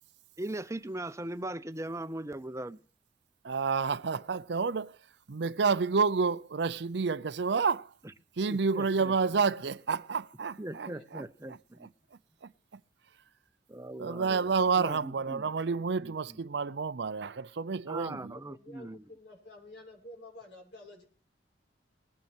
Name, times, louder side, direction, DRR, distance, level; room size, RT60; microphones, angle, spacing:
voice 1, 0.4-2.8 8.4-9.1 10.6-11.9 13.7-14.5 14.8-15.4 16.0-16.1 17.9-19.0, right 1 dB, 15° right, 0.8 m, -39 dB
voice 2, 3.4-5.0 5.3-7.9 8.4-11.2 11.5-12.8 14.0-18.3, right 5 dB, 65° right, 0.6 m, -30 dB
voice 3, 10.9-11.3 17.9-21.0, left 1 dB, 70° left, 6.6 m, -51 dB
20.5 x 9.4 x 4.4 m
head